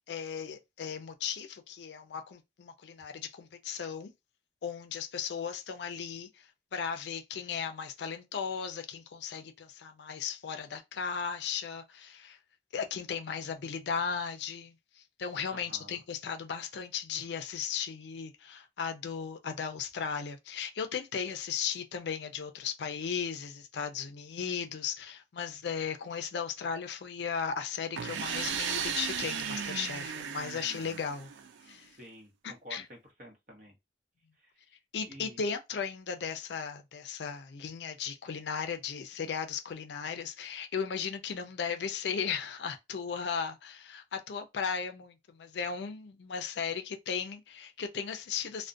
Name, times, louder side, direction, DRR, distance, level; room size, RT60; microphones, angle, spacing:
voice 1, 0.0-4.1 4.6-12.4 12.7-31.3 31.7-32.0 32.4-32.8 34.9-48.7, left 6 dB, 70° left, 0.4 m, -36 dB
voice 2, 15.5-16.0 32.0-33.8 34.4-34.5 35.0-35.5, right 1 dB, 45° right, 0.8 m, -50 dB
sound 1, 27.9-31.7, right 7 dB, 80° right, 0.3 m, -35 dB
2.4 x 2.1 x 2.5 m
head